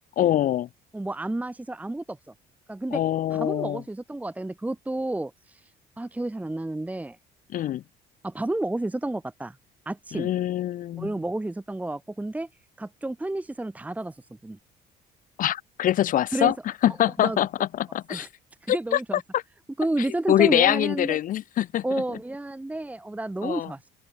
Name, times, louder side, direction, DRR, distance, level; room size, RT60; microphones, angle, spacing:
voice 1, 0.2-0.7 2.9-3.8 7.5-7.8 10.1-11.1 15.4-16.5 16.8-18.3 18.7-19.0 19.3-19.4 20.3-21.8 23.4-23.7, left 12 dB, 55° left, 0.5 m, -24 dB
voice 2, 0.9-2.2 2.7-3.0 3.3-5.6 6.0-7.2 8.2-9.6 9.9-10.3 11.0-12.5 12.8-14.1 14.4-14.6 16.3-16.5 17.2-17.4 18.1-18.3 18.6-19.2 19.8-21.2 21.8-23.8, right 2 dB, 10° right, 1.1 m, -30 dB
open air
cardioid pair, 110°, 17 cm